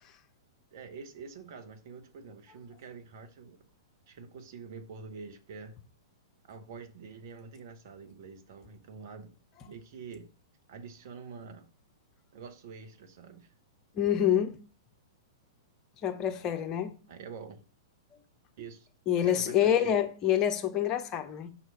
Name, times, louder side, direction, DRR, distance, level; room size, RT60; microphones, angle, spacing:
voice 1, 0.7-3.6 4.1-5.8 6.5-9.3 9.7-10.3 10.7-11.7 12.3-13.5 17.1-17.6 18.6-20.0, right 5 dB, 50° right, 0.9 m, -46 dB
voice 2, 14.0-14.6 16.0-16.9 19.1-21.5, left 10 dB, 30° left, 0.7 m, -27 dB
5.6 x 3.1 x 5.5 m
figure-of-eight pair, 105°, 2 cm